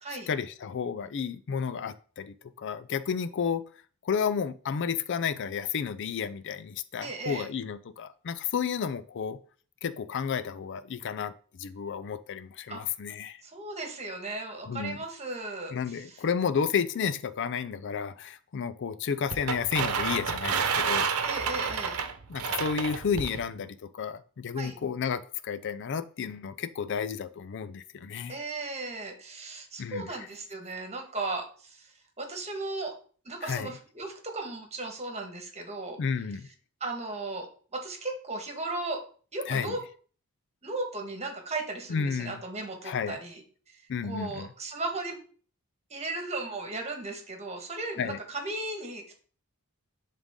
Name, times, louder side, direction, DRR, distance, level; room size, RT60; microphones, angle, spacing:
voice 1, 0.3-3.6 4.0-9.4 9.8-11.3 11.6-13.4 14.7-15.0 15.7-21.1 22.3-28.4 29.8-30.2 33.4-33.7 36.0-36.5 39.5-39.8 41.9-42.4 42.8-43.2 43.9-44.5 48.0-48.2, left 6 dB, 55° left, 0.4 m, -32 dB
voice 2, 7.0-7.5 12.7-12.8 13.4-16.2 21.2-22.0 24.5-24.7 28.3-32.9 33.2-36.0 36.8-39.0 39.3-39.8 40.6-45.2 45.9-49.1, right 2 dB, 30° right, 1.5 m, -36 dB
sound 1, 19.3-23.4, right 6 dB, 85° right, 0.9 m, -30 dB
11.0 x 3.7 x 3.7 m
head